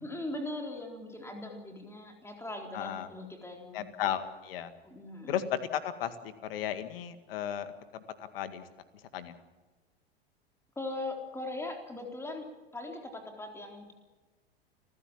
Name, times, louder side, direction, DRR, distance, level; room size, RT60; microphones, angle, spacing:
voice 1, 0.0-3.9 4.8-5.4 10.8-13.9, left 2 dB, 10° left, 3 dB, 4.0 m, -40 dB
voice 2, 2.7-3.1 3.7-4.7 5.3-8.6 9.1-9.3, left 10 dB, 65° left, 11 dB, 2.1 m, -35 dB
29.5 x 15.0 x 7.4 m, 1.3 s
figure-of-eight pair, 85°, 31 cm